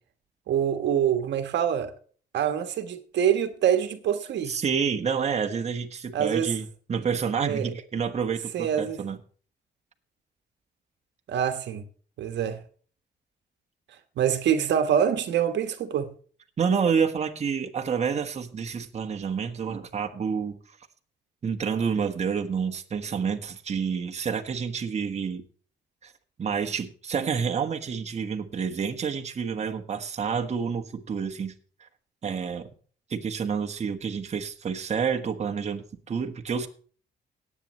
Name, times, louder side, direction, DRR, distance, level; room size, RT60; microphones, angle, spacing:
voice 1, 0.5-1.9 2.3-4.6 6.1-6.5 7.4-7.7 8.5-9.0 11.3-11.8 12.2-12.6 14.2-16.1, right 9 dB, 80° right, 1.3 m, -25 dB
voice 2, 4.5-9.2 16.6-20.6 21.4-25.4 26.0-26.1 26.4-31.5 31.8-31.9 32.2-32.7 33.1-36.7, right 6 dB, 40° right, 1.4 m, -29 dB
18.5 x 8.5 x 3.1 m
cardioid pair, 125°, 18 cm